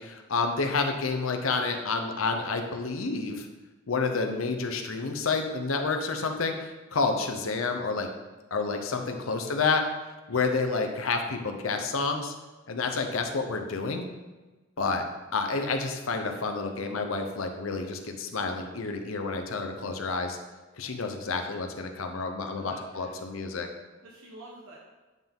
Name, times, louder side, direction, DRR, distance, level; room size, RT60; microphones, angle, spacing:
voice 1, 0.0-3.5 3.9-8.1 8.5-9.8 10.3-12.3 12.7-14.1 14.8-15.0 15.3-20.4 20.8-23.7, left 4 dB, 90° left, 5 dB, 0.8 m, -29 dB
voice 2, 18.5-18.8 22.6-23.2 24.0-24.8, right 1 dB, 85° right, -3 dB, 1.0 m, -49 dB
9.3 x 3.8 x 3.6 m, 1.2 s
head